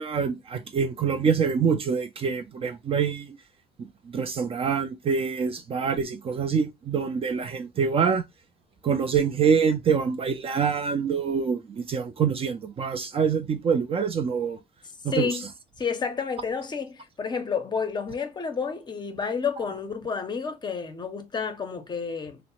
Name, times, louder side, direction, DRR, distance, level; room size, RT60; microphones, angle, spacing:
voice 1, 0.0-3.3 4.1-8.2 8.8-11.6 11.9-14.6 15.0-15.3, right 6 dB, 35° right, 0.4 m, -25 dB
voice 2, 15.1-15.4 15.8-22.4, left 5 dB, 25° left, 0.6 m, -30 dB
3.1 x 2.0 x 2.9 m
cardioid pair, 110°, 17 cm